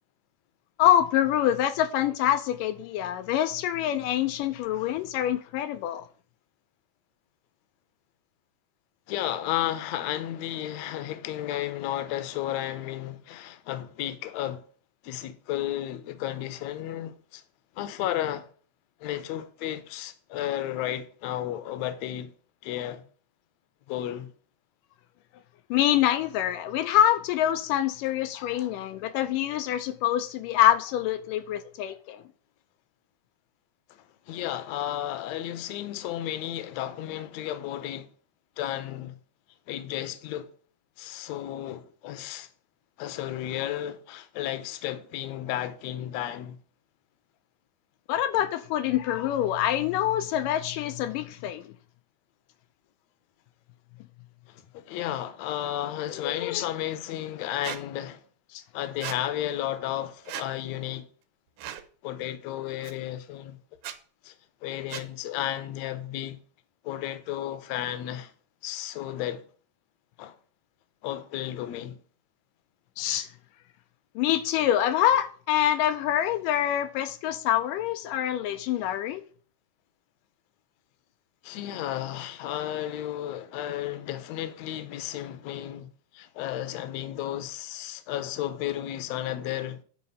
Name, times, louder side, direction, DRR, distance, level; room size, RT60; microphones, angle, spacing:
voice 1, 0.8-6.1 25.7-32.2 48.1-51.7 56.4-56.6 58.5-58.6 73.0-73.3 74.2-79.2, left 11 dB, 85° left, 2.3 m, -25 dB
voice 2, 9.1-14.7 15.0-17.4 17.8-18.5 19.0-22.3 22.6-23.0 23.9-24.3 28.6-28.7 33.9-38.1 38.6-39.2 39.7-40.5 41.0-42.5 43.0-46.6 54.5-58.2 58.7-61.1 62.0-63.6 64.2-64.4 64.6-66.4 66.8-68.3 68.6-69.5 70.2-70.4 71.0-72.0 81.4-89.8, left 12 dB, 70° left, 1.8 m, -33 dB
Squeak, 57.6-57.8 59.0-59.2 60.2-60.5 61.6-61.8 62.8-62.9 63.8-64.0 64.9-65.1, right 11 dB, 75° right, 2.3 m, -36 dB
9.6 x 4.4 x 7.0 m
omnidirectional pair, 3.9 m